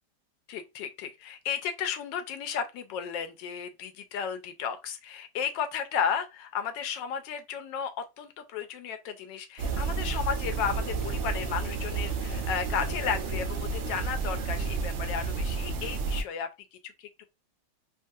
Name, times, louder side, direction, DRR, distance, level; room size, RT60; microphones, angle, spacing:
voice 1, 0.5-7.9 8.2-16.5, left 7 dB, 80° left, 1.2 m, -33 dB
sound 1, 9.6-16.2, right 4 dB, 80° right, 0.6 m, -31 dB
3.1 x 2.4 x 2.6 m
omnidirectional pair, 2.0 m